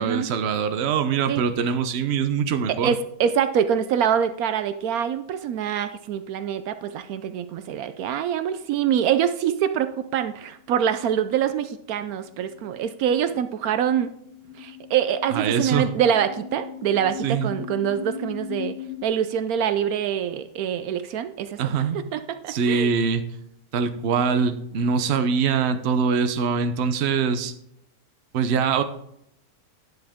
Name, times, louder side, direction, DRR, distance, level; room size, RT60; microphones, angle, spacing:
voice 1, 0.0-2.9 15.3-15.9 17.2-17.5 21.6-22.0 22.5-23.2 23.7-27.5 28.3-28.8, right 6 dB, 55° right, 9 dB, 0.9 m, -23 dB
voice 2, 2.8-14.1 14.6-18.8 19.0-21.6 22.1-22.9, right 9 dB, 75° right, 11 dB, 1.0 m, -25 dB
sound 1, 10.5-19.0, left 8 dB, 45° left, 0.7 m, -39 dB
10.0 x 7.8 x 3.6 m, 0.75 s
omnidirectional pair, 1.6 m